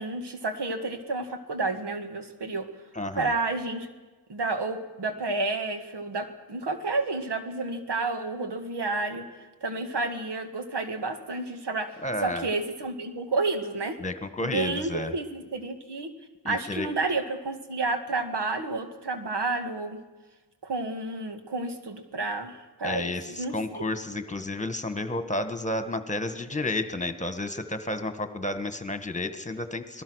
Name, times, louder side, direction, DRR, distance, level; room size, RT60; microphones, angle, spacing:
voice 1, 0.0-2.7 3.2-3.9 4.3-14.0 14.4-16.1 16.5-20.0 20.6-23.9, right 3 dB, 75° right, 6 dB, 2.1 m, -30 dB
voice 2, 2.9-3.3 12.0-12.5 14.0-15.1 16.4-16.9 22.8-30.0, left 2 dB, 15° left, 9 dB, 1.6 m, -31 dB
26.0 x 19.0 x 6.4 m, 1.2 s
wide cardioid pair, 120°, 41 cm